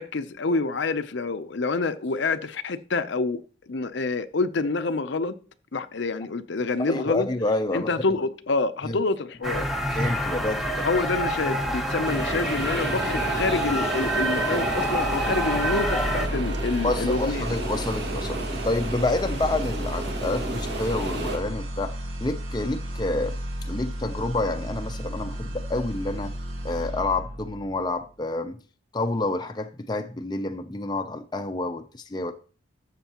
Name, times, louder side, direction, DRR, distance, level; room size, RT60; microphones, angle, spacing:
voice 1, 0.0-3.4 3.7-5.4 5.7-7.3 7.7-9.7 10.8-17.4, left 3 dB, 60° left, 0.6 m, -27 dB
voice 2, 6.9-7.9 8.9-9.0 9.9-10.9 16.8-23.4 23.7-26.3 26.6-28.6 28.9-32.3, left 2 dB, 20° left, 0.5 m, -28 dB
sound 1, 9.4-16.3, equal, ahead, 0.9 m, -27 dB
sound 2, 12.0-21.4, right 2 dB, 55° right, 1.8 m, -32 dB
sound 3, 14.9-28.0, equal, 75° right, 2.1 m, -33 dB
12.5 x 7.6 x 2.9 m
head